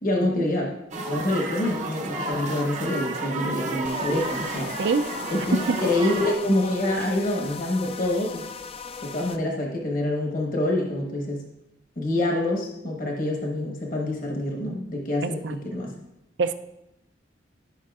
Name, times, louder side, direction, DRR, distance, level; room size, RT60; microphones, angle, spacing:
voice 1, 0.0-0.8 1.0-4.7 5.3-8.4 9.0-11.4 12.0-15.9, left 1 dB, 50° left, 0 dB, 1.2 m, -26 dB
sound 1, 0.9-6.4, right 2 dB, 40° right, 0.7 m, -31 dB
sound 2, 3.8-9.4, left 6 dB, 30° left, 0.3 m, -39 dB
voice 2, 15.2-15.6 16.4-16.5, right 4 dB, 70° right, 10 dB, 0.5 m, -24 dB
13.0 x 5.6 x 2.4 m, 0.88 s
head